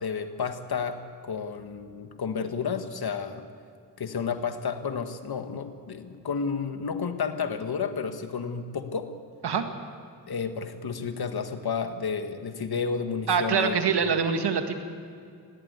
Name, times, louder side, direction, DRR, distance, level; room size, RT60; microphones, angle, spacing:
voice 1, 0.0-3.4 4.0-9.1 10.3-13.8, left 6 dB, 65° left, 8 dB, 1.7 m, -31 dB
voice 2, 13.3-14.8, right 6 dB, 70° right, 6 dB, 2.0 m, -24 dB
18.0 x 18.0 x 8.3 m, 2.3 s
cardioid pair, 55°, 41 cm